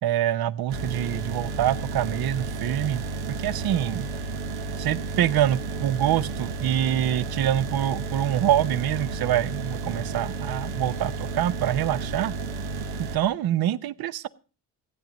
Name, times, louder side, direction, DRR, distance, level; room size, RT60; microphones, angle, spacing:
voice 1, 0.0-3.0 3.4-4.1 4.8-12.3 13.0-14.3, right 11 dB, 50° right, 16 dB, 0.9 m, -25 dB
sound 1, 0.7-13.2, right 3 dB, 80° right, 1.4 m, -32 dB
15.0 x 9.2 x 5.2 m, 0.36 s
supercardioid pair, 75°, 46 cm